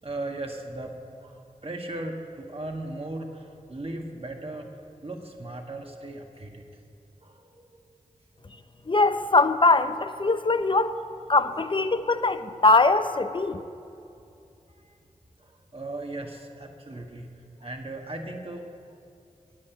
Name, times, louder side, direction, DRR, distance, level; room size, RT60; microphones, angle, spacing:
voice 1, 0.0-6.7 7.2-8.9 14.1-14.2 14.7-15.0 15.4-18.7, right 2 dB, 45° right, 2 dB, 1.6 m, -38 dB
voice 2, 8.9-11.0 11.3-13.6, left 3 dB, 35° left, 11 dB, 0.7 m, -22 dB
9.7 x 8.5 x 8.3 m, 2.6 s
cardioid pair, 40°, 14 cm